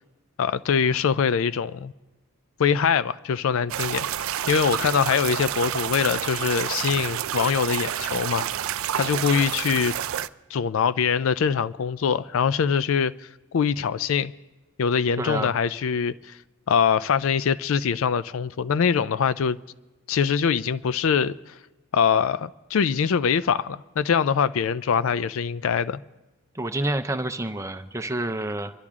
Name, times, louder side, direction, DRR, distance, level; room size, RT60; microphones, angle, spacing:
voice 1, 0.4-1.9 2.6-8.4 8.9-10.0 10.5-13.1 13.5-14.3 14.8-16.4 16.7-19.6 20.1-21.3 21.9-26.0, left 6 dB, 70° left, 0.4 m, -23 dB
sound 1, 3.7-10.3, right 10 dB, 70° right, 0.4 m, -29 dB
voice 2, 15.2-15.5 26.5-28.7, right 1 dB, 15° right, 0.5 m, -28 dB
26.5 x 11.5 x 3.6 m
head